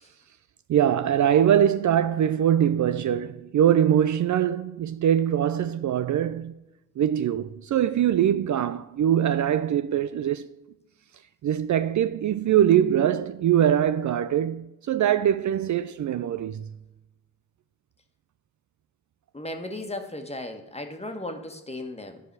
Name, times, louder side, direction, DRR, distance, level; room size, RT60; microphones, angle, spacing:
voice 1, 0.7-6.5 7.0-10.5 11.4-16.7, right 10 dB, 55° right, 0.4 m, -22 dB
voice 2, 19.3-22.2, left 1 dB, 15° left, 1.5 m, -36 dB
11.5 x 4.8 x 4.7 m
supercardioid pair, 55°, 36 cm